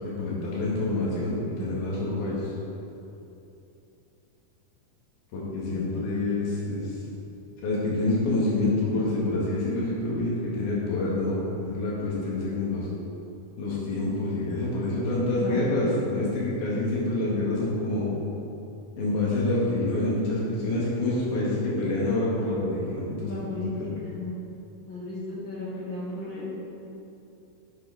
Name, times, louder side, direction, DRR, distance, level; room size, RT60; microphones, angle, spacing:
voice 1, 0.0-2.4 5.3-6.9 7.6-12.8 13.6-18.1 19.0-23.9, left 2 dB, 90° left, -6 dB, 3.9 m, -27 dB
voice 2, 15.4-15.8 23.2-24.3 24.9-26.6, left 2 dB, 50° left, -7 dB, 1.5 m, -34 dB
10.5 x 7.6 x 4.1 m, 2.8 s
omnidirectional pair, 4.3 m